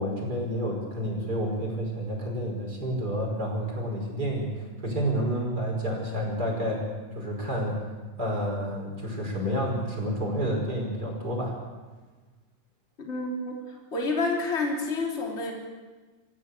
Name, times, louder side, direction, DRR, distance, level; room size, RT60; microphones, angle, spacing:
voice 1, 0.0-6.8 7.1-7.8 8.2-11.6, equal, 25° right, 0 dB, 5.8 m, -29 dB
voice 2, 13.0-15.5, left 3 dB, 20° left, -1 dB, 3.4 m, -29 dB
27.5 x 15.0 x 6.9 m, 1.3 s
omnidirectional pair, 3.8 m